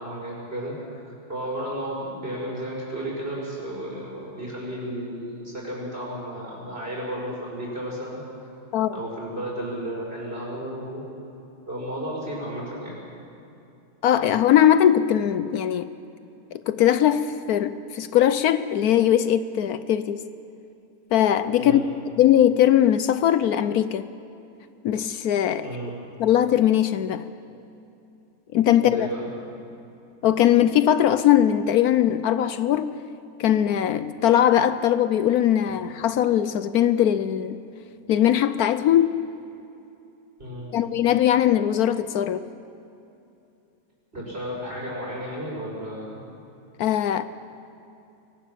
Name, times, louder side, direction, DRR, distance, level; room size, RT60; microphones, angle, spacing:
voice 1, 0.0-8.2 8.9-11.0 11.7-13.0 21.6-21.8 25.6-25.9 28.7-29.3 40.4-40.7 44.1-46.2, right 1 dB, 40° right, 6.6 m, -33 dB
voice 2, 14.0-15.9 16.5-20.2 21.1-21.8 22.2-24.0 24.8-25.7 26.2-27.3 28.5-29.1 30.2-33.0 33.4-37.6 38.1-39.2 40.7-42.4 46.8-47.2, left 11 dB, 75° left, 1.1 m, -20 dB
24.0 x 18.0 x 7.4 m
omnidirectional pair, 1.7 m